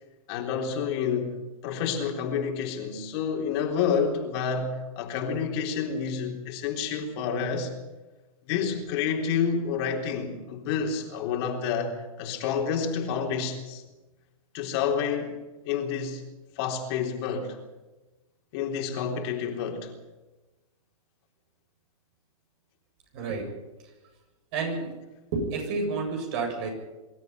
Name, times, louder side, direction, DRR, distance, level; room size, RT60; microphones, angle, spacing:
voice 1, 0.3-7.7 8.5-13.8 14.5-15.4 15.7-16.2 16.6-17.6 18.5-19.9, left 6 dB, 45° left, 3.8 m, -29 dB
voice 2, 23.1-23.5 24.5-24.9 25.3-26.7, right 4 dB, 45° right, 7.8 m, -30 dB
24.5 x 13.0 x 9.6 m
hypercardioid pair, 120°, 18 cm